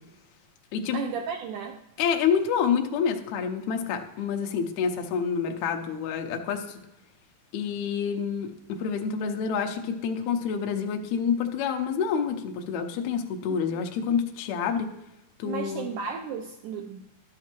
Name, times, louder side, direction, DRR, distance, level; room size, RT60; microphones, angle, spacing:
voice 1, 0.9-1.8 13.7-13.8 15.4-17.0, right 6 dB, 85° right, 4 dB, 1.9 m, -34 dB
voice 2, 2.0-6.8 7.5-14.9 15.4-15.9, left 7 dB, 80° left, 4 dB, 1.7 m, -28 dB
12.0 x 7.4 x 3.0 m, 0.91 s
omnidirectional pair, 4.2 m